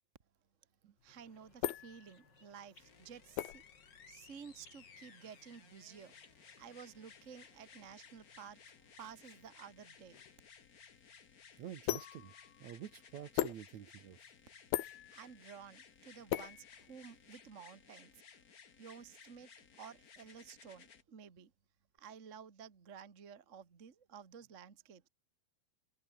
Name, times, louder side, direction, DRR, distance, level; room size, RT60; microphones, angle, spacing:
sound 1, 1.0-17.4, left 14 dB, 80° left, 3.2 m, -43 dB
voice 1, 1.0-3.6 4.1-6.1 6.6-8.6 9.0-10.2 15.1-18.2 18.8-19.5 19.8-21.5 22.0-25.1, right 7 dB, 45° right, 0.9 m, -53 dB
sound 2, 1.1-10.4, left 2 dB, 25° left, 8.5 m, -69 dB
sound 3, 2.8-21.0 22.0-22.1, left 6 dB, 55° left, 0.9 m, -60 dB
voice 2, 11.6-12.3 12.6-14.2, right 10 dB, 60° right, 2.3 m, -48 dB
omnidirectional pair, 4.3 m